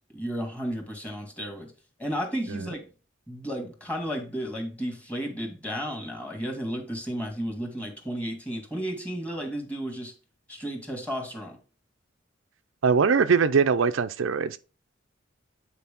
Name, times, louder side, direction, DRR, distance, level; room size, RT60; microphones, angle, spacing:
voice 1, 0.1-1.7 2.0-2.8 3.3-10.1 10.5-11.6, equal, 10° left, 1.8 m, -33 dB
voice 2, 12.8-14.6, right 5 dB, 90° right, 0.5 m, -22 dB
8.3 x 4.5 x 3.6 m
head